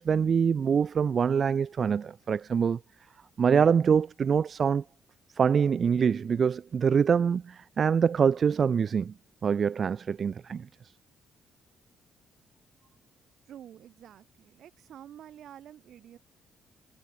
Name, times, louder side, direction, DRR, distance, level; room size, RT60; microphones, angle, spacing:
voice 1, 0.0-2.8 3.4-4.8 5.3-9.1 9.4-10.7, right 6 dB, 50° right, 0.3 m, -25 dB
voice 2, 13.5-16.2, right 10 dB, 70° right, 3.7 m, -49 dB
cardioid pair, 90°, 0 cm